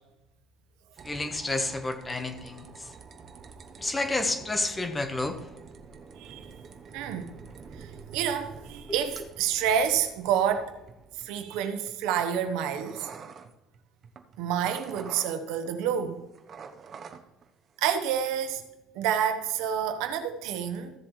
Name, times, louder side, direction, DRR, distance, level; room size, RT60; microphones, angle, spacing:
voice 1, 1.0-2.9 3.8-5.4 8.9-9.0, left 2 dB, 15° left, 1.2 m, -30 dB
sound 1, 1.0-15.9 16.2-17.5 17.8-18.3, right 5 dB, 40° right, 0.9 m, -48 dB
voice 2, 6.2-6.5 6.9-7.3 7.8-10.8 11.1-13.1 14.4-16.2 17.8-18.6 18.9-20.9, right 8 dB, 85° right, 1.0 m, -28 dB
15.0 x 7.5 x 3.2 m
cardioid pair, 120°, 0 cm